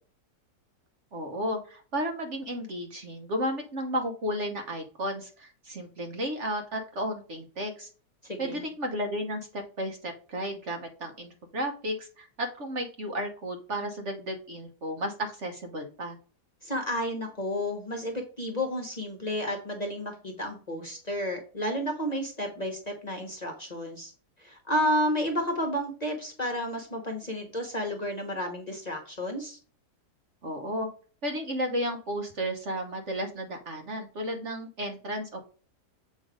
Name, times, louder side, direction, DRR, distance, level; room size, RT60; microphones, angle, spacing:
voice 1, 1.1-7.9 8.4-16.2 30.4-30.9 31.2-35.4, equal, 50° right, 4 dB, 1.1 m, -33 dB
voice 2, 8.2-8.6 16.6-24.1 24.4-29.6, equal, 30° left, 2 dB, 1.0 m, -31 dB
7.4 x 3.2 x 5.0 m, 0.39 s
omnidirectional pair, 1.8 m